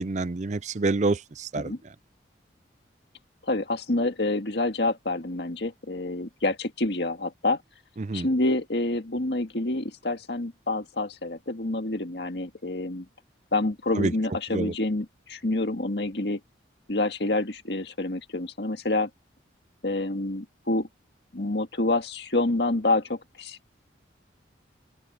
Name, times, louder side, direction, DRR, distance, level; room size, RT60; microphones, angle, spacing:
voice 1, 0.0-1.7 8.0-8.3 14.0-14.1 14.5-14.7, right 3 dB, 40° right, 0.5 m, -27 dB
voice 2, 3.5-7.6 8.1-13.1 13.5-16.4 16.9-19.1 19.8-20.9 21.3-23.7, left 2 dB, 60° left, 1.9 m, -27 dB
open air
head